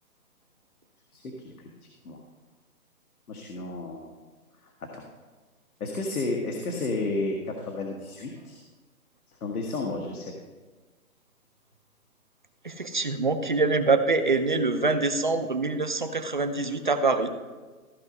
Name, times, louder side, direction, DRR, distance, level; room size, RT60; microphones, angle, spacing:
voice 1, 1.1-1.5 2.0-2.2 3.3-4.1 4.9-5.0 5.8-8.6 9.4-10.3, left 2 dB, 75° left, 1 dB, 1.6 m, -32 dB
voice 2, 12.6-17.3, right 3 dB, 35° right, 8 dB, 0.5 m, -25 dB
14.5 x 5.1 x 5.3 m, 1.4 s
hypercardioid pair, 170°, 44 cm